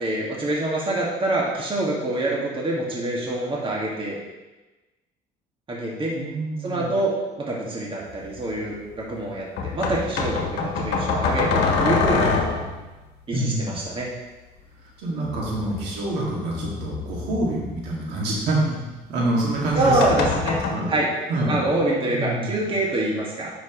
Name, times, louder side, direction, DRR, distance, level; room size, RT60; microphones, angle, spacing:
voice 1, 0.0-4.2 5.7-6.1 6.6-12.4 13.3-14.1 19.8-20.6 20.9-21.1 21.5-23.5, right 1 dB, 30° right, -4 dB, 2.0 m, -25 dB
voice 2, 6.1-6.9 13.3-13.8 14.8-20.3 20.7-20.9 21.3-21.6 22.1-22.6, right 1 dB, 85° right, -4 dB, 2.3 m, -26 dB
sound 1, 8.1-8.2 9.6-12.9 15.2-17.9 19.5-20.7, left 4 dB, 75° left, 1.3 m, -25 dB
9.7 x 6.2 x 3.1 m, 1.1 s
cardioid pair, 110°, 17 cm